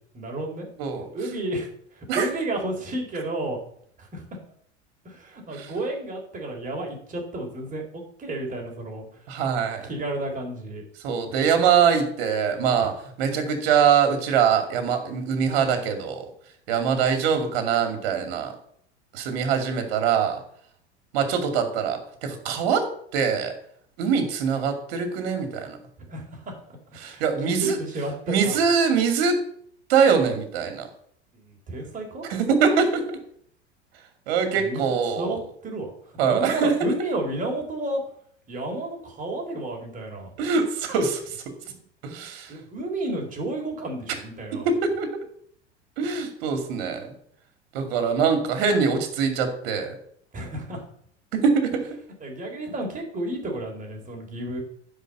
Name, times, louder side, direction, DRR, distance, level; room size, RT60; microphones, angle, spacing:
voice 1, 0.1-0.7 1.1-3.6 4.0-4.4 5.1-9.1 9.8-10.8 11.3-11.6 12.8-12.9 26.0-26.5 26.9-28.6 31.3-32.2 34.6-34.8 35.2-35.9 36.2-38.0 38.5-40.3 42.5-44.7 50.3-50.8 52.2-54.6, right 2 dB, 20° right, 1 dB, 3.7 m, -31 dB
voice 2, 0.8-1.1 2.1-2.3 5.5-5.7 9.3-9.9 11.0-12.9 13.2-16.3 16.7-18.5 19.1-20.4 21.1-23.5 24.0-25.8 27.0-27.8 28.3-29.5 29.9-30.9 32.3-33.2 34.3-35.4 36.2-36.9 40.4-41.2 42.0-42.5 44.6-45.1 46.0-47.1 47.7-49.9 51.3-51.8, right 6 dB, 55° right, 7 dB, 2.5 m, -23 dB
10.5 x 5.0 x 7.8 m, 0.64 s
figure-of-eight pair, 80°, 35 cm